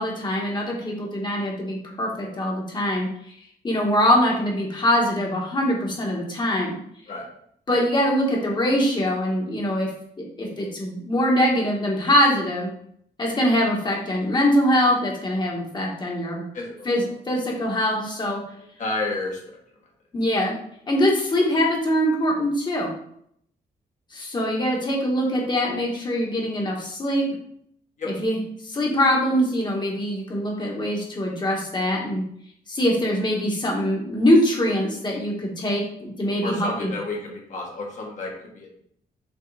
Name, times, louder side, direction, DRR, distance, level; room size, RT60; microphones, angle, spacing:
voice 1, 0.0-3.1 3.6-6.8 7.7-9.9 10.2-12.7 13.2-16.4 16.8-18.4 20.1-20.5 20.9-22.9 24.1-27.3 28.0-32.2 32.7-36.9, equal, 25° left, -2 dB, 1.6 m, -23 dB
voice 2, 16.5-16.9 18.8-19.6 28.0-28.1 36.4-38.7, left 2 dB, 45° left, -1 dB, 1.8 m, -31 dB
6.8 x 3.8 x 4.1 m, 0.69 s
wide cardioid pair, 165°, 17 cm